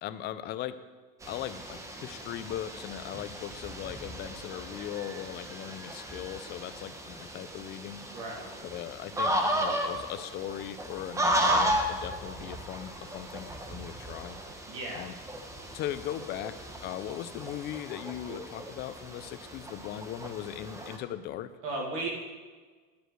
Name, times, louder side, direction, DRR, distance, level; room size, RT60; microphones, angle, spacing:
voice 1, 0.0-0.8 1.3-8.0 8.6-14.4 14.9-15.2 15.7-21.5, left 11 dB, 35° left, 12 dB, 0.5 m, -39 dB
sound 1, 1.2-21.0, equal, 10° right, 0.9 m, -35 dB
voice 2, 8.1-8.5 14.7-15.1 21.6-22.1, right 2 dB, 50° right, -2 dB, 2.2 m, -35 dB
10.5 x 5.0 x 7.8 m, 1.4 s
supercardioid pair, 145°, 29 cm